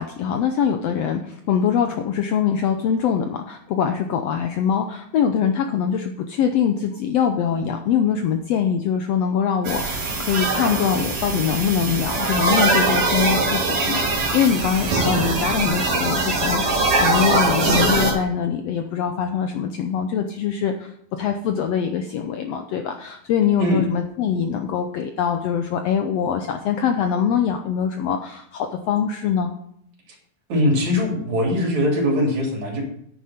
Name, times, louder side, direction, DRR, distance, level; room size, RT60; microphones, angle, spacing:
voice 1, 0.0-29.5, left 7 dB, 75° left, 6 dB, 1.5 m, -23 dB
sound 1, 9.6-18.1, right 3 dB, 45° right, 3.0 m, -22 dB
voice 2, 30.5-32.8, left 1 dB, 65° right, -1 dB, 4.4 m, -21 dB
9.7 x 9.4 x 4.3 m, 0.73 s
omnidirectional pair, 3.6 m